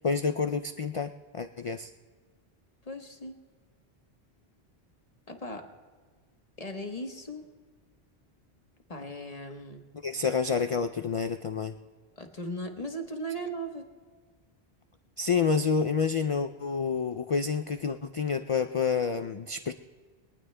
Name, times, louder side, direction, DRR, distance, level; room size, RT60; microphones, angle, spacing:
voice 1, 0.0-1.9 10.0-11.7 15.2-19.7, left 5 dB, 60° left, 9 dB, 0.3 m, -28 dB
voice 2, 2.8-3.4 5.3-5.7 6.6-7.4 8.9-9.9 12.2-13.9, right 1 dB, 35° left, 4 dB, 1.2 m, -37 dB
24.0 x 18.5 x 2.2 m, 1.5 s
omnidirectional pair, 1.1 m